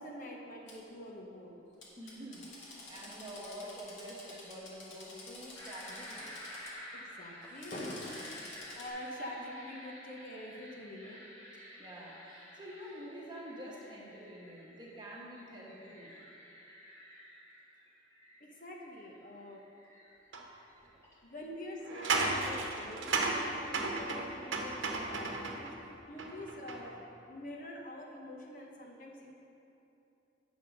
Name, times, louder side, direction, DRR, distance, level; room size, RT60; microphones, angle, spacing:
voice 1, 0.0-1.5 6.9-11.2 18.4-19.6 21.2-25.7 26.1-27.0 27.3-29.3, left 1 dB, 45° left, -1 dB, 1.0 m, -45 dB
Drill, 0.7-0.8 1.8-6.7 7.4-8.9, left 2 dB, 80° left, 1.8 m, -50 dB
voice 2, 2.0-6.5 11.8-16.1, equal, 25° right, -4 dB, 1.3 m, -47 dB
sound 1, 5.5-23.6, equal, 15° left, 1.2 m, -52 dB
sound 2, 20.3-20.4 21.8-25.7 26.2-27.0, right 3 dB, 85° right, 0.9 m, -34 dB
8.7 x 6.1 x 5.3 m, 2.9 s
head